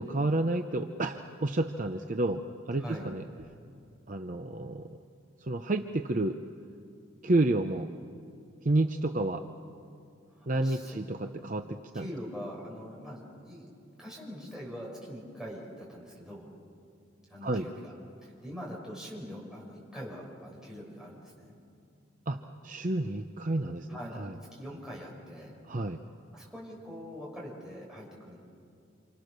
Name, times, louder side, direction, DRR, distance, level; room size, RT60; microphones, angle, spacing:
voice 1, 0.0-3.2 4.1-5.0 5.4-6.4 7.2-7.9 8.6-9.4 10.5-12.1 17.4-17.7 22.3-24.3 25.7-26.0, right 2 dB, 40° right, 6 dB, 0.7 m, -30 dB
voice 2, 2.8-3.1 10.3-11.0 11.9-13.7 14.0-16.5 17.3-17.9 18.2-21.6 23.9-25.6 26.3-28.4, equal, 5° right, -4 dB, 6.0 m, -43 dB
28.5 x 27.5 x 6.7 m, 2.4 s
head